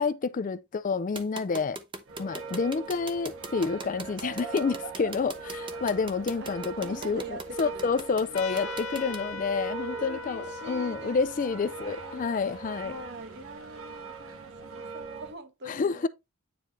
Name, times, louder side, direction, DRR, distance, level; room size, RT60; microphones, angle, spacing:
voice 1, 0.0-1.8 2.2-13.0 15.7-16.1, left 5 dB, 35° left, 0.4 m, -29 dB
sound 1, 1.2-9.2, right 3 dB, 20° right, 0.7 m, -40 dB
sound 2, 2.1-15.3, right 4 dB, 70° right, 1.7 m, -41 dB
voice 2, 6.8-7.9 8.5-12.3 12.8-16.1, right 1 dB, 50° right, 1.1 m, -44 dB
Trumpet, 8.3-13.4, left 3 dB, 70° left, 1.0 m, -41 dB
9.3 x 3.1 x 3.9 m
head